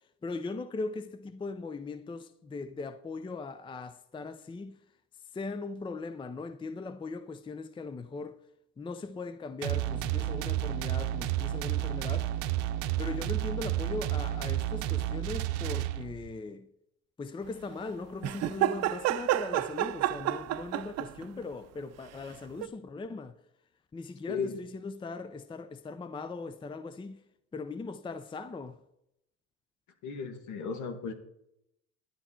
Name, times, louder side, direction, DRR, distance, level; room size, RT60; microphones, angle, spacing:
voice 1, 0.2-4.8 5.3-8.4 8.8-12.3 13.0-16.7 17.2-23.4 23.9-27.2 27.5-28.8, left 3 dB, 15° left, 0.5 m, -39 dB
sound 1, 9.6-16.3, right 13 dB, 85° right, 0.7 m, -31 dB
sound 2, 18.2-21.2 22.6-22.7, right 13 dB, 50° right, 0.7 m, -30 dB
voice 2, 24.3-24.6 30.0-31.1, left 5 dB, 65° left, 2.0 m, -35 dB
10.5 x 9.9 x 4.5 m
supercardioid pair, 90°, 33 cm